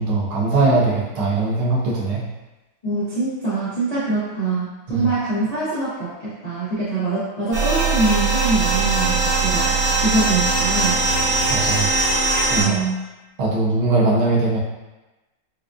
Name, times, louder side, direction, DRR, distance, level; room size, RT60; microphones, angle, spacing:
voice 1, 0.0-2.2 4.9-5.1 11.5-11.9 12.5-12.8 13.4-14.6, right 3 dB, 80° right, -4 dB, 1.6 m, -20 dB
voice 2, 2.8-11.0 12.5-13.0, right 3 dB, 60° left, -12 dB, 0.4 m, -24 dB
sound 1, 7.5-12.6, right 3 dB, 50° right, 1.3 m, -20 dB
4.9 x 2.4 x 2.3 m, 1.1 s
omnidirectional pair, 2.3 m